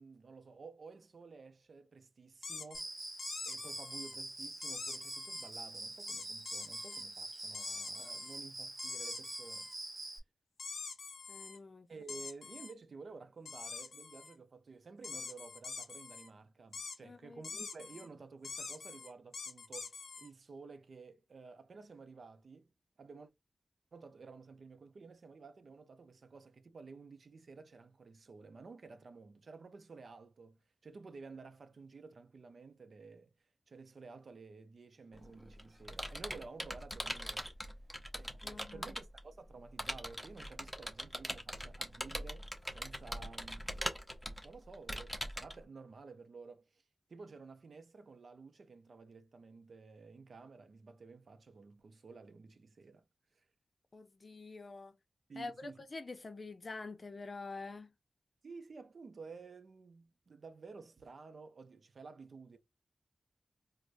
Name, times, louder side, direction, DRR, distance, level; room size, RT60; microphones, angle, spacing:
voice 1, 0.0-3.0 3.4-9.7 10.0-10.1 11.9-22.7 23.0-23.3 23.9-33.3 33.7-37.5 38.2-44.0 44.4-46.8 47.1-53.0 53.3-53.4 55.3-55.9 58.4-62.6, right 4 dB, 65° right, 0.5 m, -53 dB
sound 1, 2.4-2.8 3.2-4.2 4.6-5.5 6.1-7.0 7.5-8.4 8.8-9.7 10.6-11.6 12.1-12.7 13.5-14.3 15.0-16.3 16.7-17.0 17.4-18.1 18.4-20.3, left 4 dB, 90° left, 0.6 m, -45 dB
Cricket, 2.7-10.2, right 2 dB, 40° right, 0.8 m, -45 dB
voice 2, 11.3-11.9 17.0-17.4 38.4-38.9 53.9-55.0 55.4-57.9, left 3 dB, 45° left, 0.5 m, -46 dB
Computer keyboard, 35.1-39.2 39.8-45.5, equal, 5° left, 0.7 m, -41 dB
4.6 x 2.1 x 2.5 m
wide cardioid pair, 110°, 0 cm